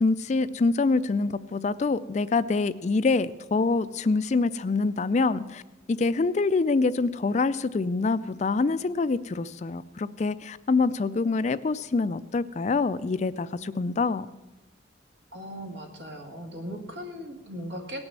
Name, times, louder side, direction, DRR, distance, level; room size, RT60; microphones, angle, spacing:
voice 1, 0.0-5.6 5.9-14.3, left 3 dB, 35° left, 15 dB, 0.3 m, -25 dB
voice 2, 15.3-18.0, equal, 75° right, 3 dB, 2.0 m, -38 dB
17.5 x 6.2 x 7.5 m, 1.1 s
head